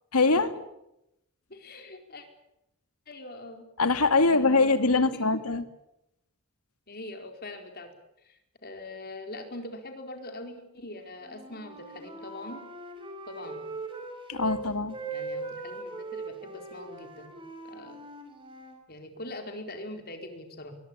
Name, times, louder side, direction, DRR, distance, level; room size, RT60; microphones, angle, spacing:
voice 1, 0.1-0.5 3.8-5.7 14.3-15.0, left 3 dB, 85° left, 10 dB, 2.2 m, -23 dB
voice 2, 1.5-2.2 3.1-3.6 4.2-5.4 6.9-7.9 8.2-12.7 13.3-13.6 15.1-17.3 17.6-18.0 18.9-20.8, left 1 dB, 45° left, 5 dB, 4.6 m, -42 dB
Wind instrument woodwind instrument, 11.2-14.6 14.9-18.8, right 3 dB, 25° right, 5.6 m, -40 dB
23.5 x 22.5 x 8.9 m, 0.85 s
head